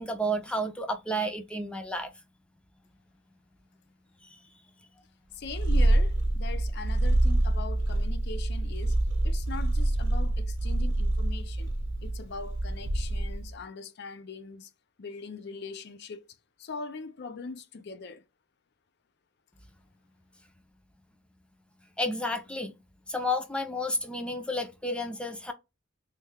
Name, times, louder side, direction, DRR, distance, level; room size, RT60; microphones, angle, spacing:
voice 1, 0.0-2.1 4.3-4.4 22.0-22.7 23.1-25.5, equal, 5° left, 0.5 m, -31 dB
voice 2, 5.3-9.0 9.2-11.7 12.0-14.7 15.0-16.3 16.6-18.2, left 4 dB, 60° left, 0.5 m, -41 dB
Purr, 5.4-13.5, right 1 dB, 70° right, 0.7 m, -26 dB
3.2 x 2.3 x 3.3 m
head